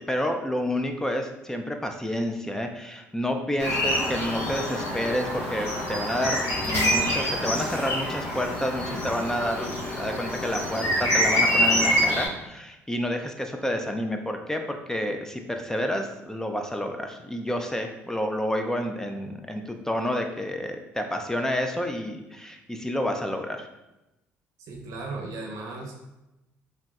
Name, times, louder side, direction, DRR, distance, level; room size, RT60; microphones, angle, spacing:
voice 1, 0.0-23.7, equal, 10° left, 4 dB, 0.3 m, -29 dB
sound 1, 3.6-12.3, equal, 80° left, 0.8 m, -26 dB
voice 2, 24.7-25.9, right 3 dB, 70° right, 0 dB, 0.7 m, -36 dB
3.8 x 2.1 x 2.3 m, 0.95 s
supercardioid pair, 75°, 6 cm